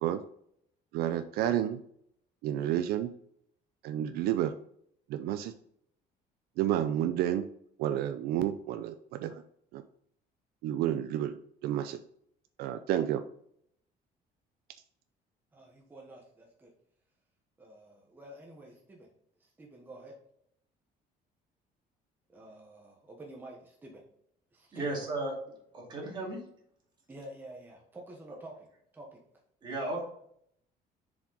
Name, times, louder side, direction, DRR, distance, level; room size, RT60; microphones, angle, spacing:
voice 1, 0.9-1.8 2.4-3.1 3.8-4.5 5.1-5.5 6.6-7.5 7.8-9.4 9.7-9.8 10.6-12.0 12.6-13.2, right 11 dB, 75° right, 10 dB, 0.5 m, -30 dB
voice 2, 15.5-16.7 17.6-19.1 19.4-20.2 22.3-24.0 24.5-24.9 27.1-28.5 28.9-29.2, right 1 dB, 10° right, -1 dB, 1.1 m, -49 dB
voice 3, 24.7-25.3 25.7-26.4 29.6-30.0, right 2 dB, 30° right, -1 dB, 2.3 m, -34 dB
6.9 x 5.1 x 3.9 m, 0.69 s
cardioid pair, 175°, 16 cm